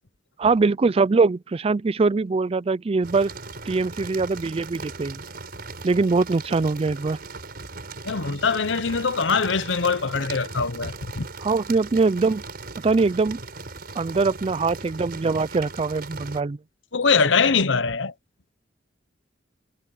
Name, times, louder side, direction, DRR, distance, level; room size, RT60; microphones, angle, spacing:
voice 1, 0.4-3.3 3.7-5.2 5.8-7.2 11.4-12.4 12.8-13.4 14.0-16.6, right 4 dB, 30° right, 0.4 m, -22 dB
sound 1, 3.0-16.4, right 3 dB, 55° right, 5.9 m, -38 dB
voice 2, 8.0-11.3 16.9-18.1, left 5 dB, 75° left, 1.0 m, -22 dB
head